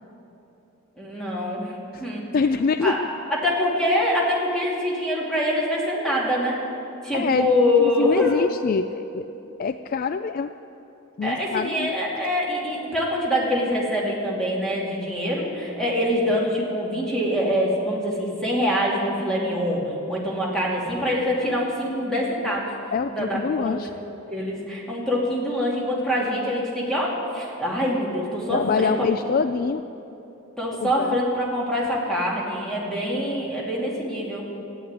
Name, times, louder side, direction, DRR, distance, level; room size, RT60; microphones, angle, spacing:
voice 1, 1.0-2.3 2.6-3.0 3.3-6.6 7.0-8.4 11.2-22.7 23.1-23.8 24.3-28.9 29.2-29.3 30.6-34.4, left 1 dB, 5° left, -4 dB, 2.7 m, -24 dB
voice 2, 2.3-3.1 7.1-7.5 7.8-9.2 9.6-10.5 11.2-11.9 22.9-23.9 28.5-29.8 30.8-31.2, left 5 dB, 40° left, 11 dB, 0.3 m, -25 dB
14.0 x 9.5 x 9.6 m, 2.9 s
head